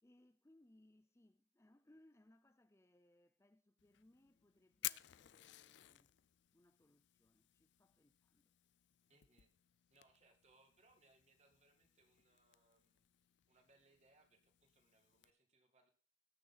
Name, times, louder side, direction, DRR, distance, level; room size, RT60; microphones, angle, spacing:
voice 1, 0.0-6.1 6.5-8.5, left 1 dB, 15° left, 0.5 m, -70 dB
Fire, 3.8-15.3, left 16 dB, 80° left, 0.4 m, -55 dB
voice 2, 9.1-9.5 9.9-13.1 13.5-15.9, right 2 dB, 35° right, 2.2 m, -73 dB
18.5 x 6.6 x 4.1 m
head